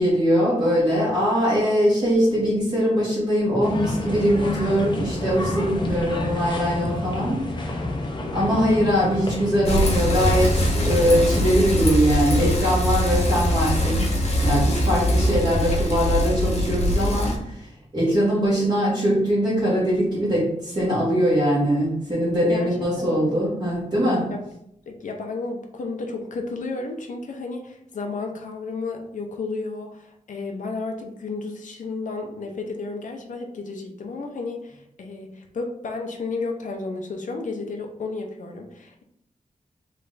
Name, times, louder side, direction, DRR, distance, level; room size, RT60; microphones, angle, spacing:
voice 1, 0.0-7.7 8.3-14.1 14.4-24.3, equal, 30° right, -9 dB, 1.5 m, -22 dB
sound 1, 3.6-11.4, left 1 dB, 35° left, 0.6 m, -29 dB
Bicycle, 9.6-17.4, equal, 50° left, 1.1 m, -22 dB
voice 2, 22.4-23.6 24.3-24.4 24.9-39.0, left 3 dB, 70° left, 2 dB, 0.7 m, -32 dB
3.3 x 3.2 x 3.9 m, 0.76 s
wide cardioid pair, 165°, 13 cm